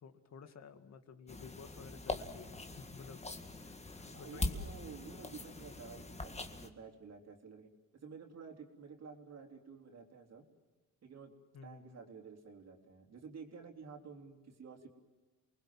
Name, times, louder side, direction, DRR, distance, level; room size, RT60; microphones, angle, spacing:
voice 1, 0.0-3.2 3.6-4.7 11.5-12.0, left 6 dB, 60° left, 8 dB, 2.2 m, -53 dB
sound 1, 1.3-6.7, left 2 dB, 20° left, 1.9 m, -42 dB
voice 2, 4.1-7.7 8.0-10.4 11.0-11.3 11.6-14.9, right 5 dB, 60° right, 4 dB, 3.7 m, -51 dB
28.5 x 20.5 x 7.6 m, 1.3 s
cardioid pair, 90°, 30 cm